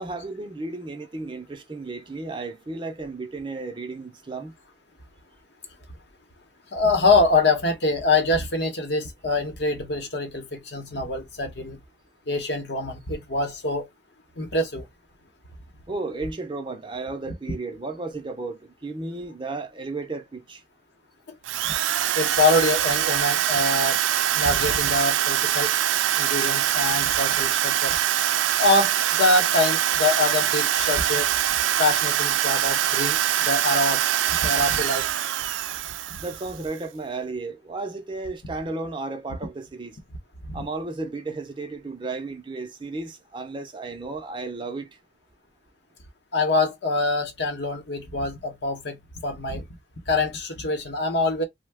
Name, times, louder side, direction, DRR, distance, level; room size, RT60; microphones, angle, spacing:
voice 1, 0.0-4.5 15.9-20.6 36.2-40.0 40.5-44.9, right 3 dB, 25° right, 0.5 m, -33 dB
voice 2, 6.7-11.8 12.3-13.9 14.4-14.8 22.2-24.0 24.3-25.7 26.2-28.0 28.6-28.9 29.2-31.3 31.8-33.2 33.4-34.0 34.4-35.0 40.5-40.6 46.3-49.0 49.2-49.6 50.1-51.4, left 2 dB, 60° left, 0.9 m, -24 dB
Drill, 21.4-36.6, right 11 dB, 85° right, 0.3 m, -23 dB
2.7 x 2.1 x 3.4 m
head